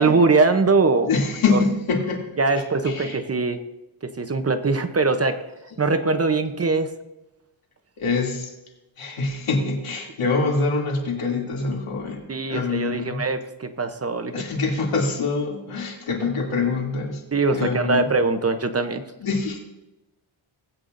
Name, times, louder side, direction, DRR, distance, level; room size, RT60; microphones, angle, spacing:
voice 1, 0.0-1.1 1.5-1.6 2.4-3.6 4.2-5.4 5.8-6.9 12.3-14.3 17.3-19.0, right 3 dB, 30° right, 8 dB, 0.7 m, -21 dB
voice 2, 1.0-2.2 2.8-3.2 8.0-8.5 9.0-13.2 14.3-17.2 17.5-18.1 19.2-19.6, left 4 dB, 80° left, -1 dB, 2.7 m, -25 dB
19.0 x 8.4 x 2.6 m, 0.97 s
wide cardioid pair, 100°, 49 cm